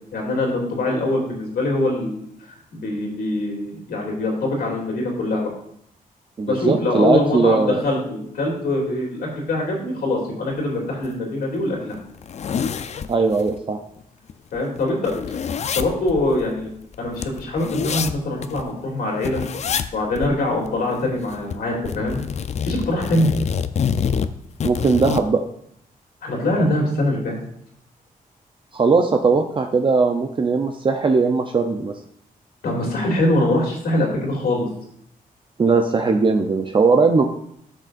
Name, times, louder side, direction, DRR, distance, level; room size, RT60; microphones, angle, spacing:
voice 1, 0.1-2.2 2.7-5.5 6.5-12.0 14.5-15.1 15.7-16.7 17.0-19.4 19.9-22.2 22.6-23.3 26.2-27.4 32.6-34.7, left 1 dB, 85° left, -1 dB, 2.7 m, -23 dB
voice 2, 6.4-7.8 13.1-13.8 24.6-25.4 28.7-31.9 35.6-37.2, right 4 dB, 35° right, 4 dB, 0.6 m, -19 dB
sound 1, 11.0-11.1 11.5-11.6 12.0-13.6 14.0-14.1 14.3-18.7 19.2-19.9 20.2-20.3 20.7-21.6 21.8-25.3, left 7 dB, 50° left, 0.5 m, -27 dB
12.0 x 6.6 x 2.5 m, 0.70 s
wide cardioid pair, 115°, 15 cm